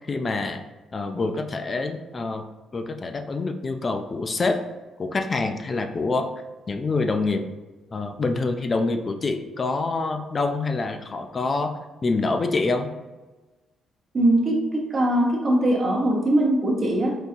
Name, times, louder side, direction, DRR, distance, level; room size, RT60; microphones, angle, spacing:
voice 1, 0.1-0.6 0.9-2.4 2.7-4.6 5.0-6.3 6.7-7.4 7.9-12.9, left 3 dB, 35° left, 6 dB, 0.3 m, -26 dB
voice 2, 14.1-17.1, right 1 dB, 40° right, 0 dB, 0.8 m, -21 dB
3.7 x 2.7 x 2.4 m, 1.2 s
cardioid pair, 90°, 0 cm